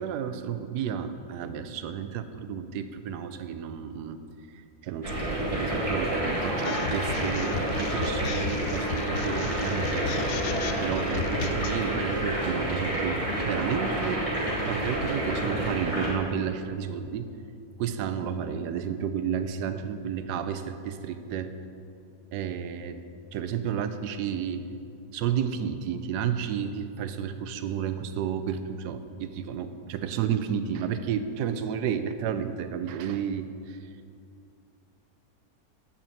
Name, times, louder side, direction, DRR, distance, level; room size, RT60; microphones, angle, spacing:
voice 1, 0.0-4.2 4.5-10.3 10.8-17.3 17.8-21.5 22.3-23.0 23.3-24.6 25.1-33.9, right 8 dB, 90° right, 10 dB, 1.1 m, -32 dB
sound 1, 5.0-16.1, right 1 dB, 20° right, 1.9 m, -29 dB
sound 2, 6.6-11.8, left 6 dB, 70° left, 1.0 m, -34 dB
9.8 x 4.4 x 7.0 m, 2.5 s
omnidirectional pair, 1.7 m